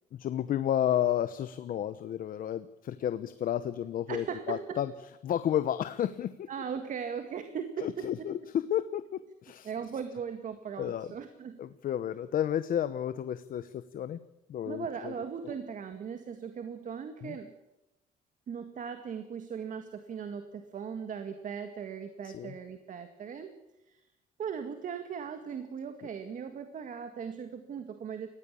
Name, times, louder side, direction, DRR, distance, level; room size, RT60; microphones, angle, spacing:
voice 1, 0.1-4.9 5.2-6.5 7.8-9.7 10.8-11.1 11.6-14.2 14.5-15.1 15.4-15.5 17.2-17.4 22.2-22.5, left 10 dB, 60° left, 12 dB, 1.0 m, -32 dB
voice 2, 4.1-4.8 6.5-8.3 9.6-11.6 14.7-17.5 18.5-23.5 23.9-24.0 24.4-28.3, right 7 dB, 50° right, 8 dB, 2.0 m, -38 dB
20.5 x 15.5 x 8.5 m, 0.94 s
cardioid pair, 125°, 17 cm